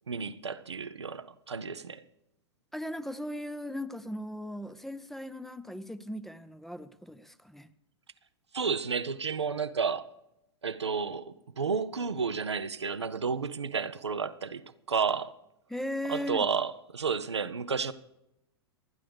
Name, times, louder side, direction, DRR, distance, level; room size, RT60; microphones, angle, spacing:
voice 1, 0.1-2.0 8.5-10.1 10.6-15.3 16.1-17.9, right 5 dB, 80° right, 0.6 m, -31 dB
voice 2, 2.7-7.7 15.7-16.5, left 1 dB, ahead, 0.6 m, -38 dB
27.5 x 9.7 x 3.4 m
figure-of-eight pair, 95°, 14 cm